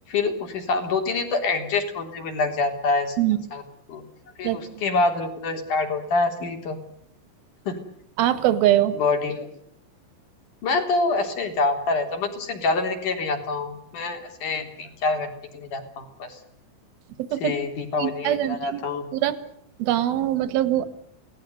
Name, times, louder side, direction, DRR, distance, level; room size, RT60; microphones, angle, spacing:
voice 1, 0.1-3.2 3.5-3.6 3.9-4.0 4.4-6.8 7.7-7.8 8.9-9.5 10.6-16.4 17.4-19.1, left 3 dB, 45° left, 5 dB, 4.6 m, -26 dB
voice 2, 8.2-9.0 17.3-17.5 18.0-18.8 19.1-19.3 19.8-20.9, right 13 dB, 60° right, 13 dB, 3.1 m, -22 dB
28.0 x 19.0 x 8.1 m, 0.70 s
omnidirectional pair, 5.8 m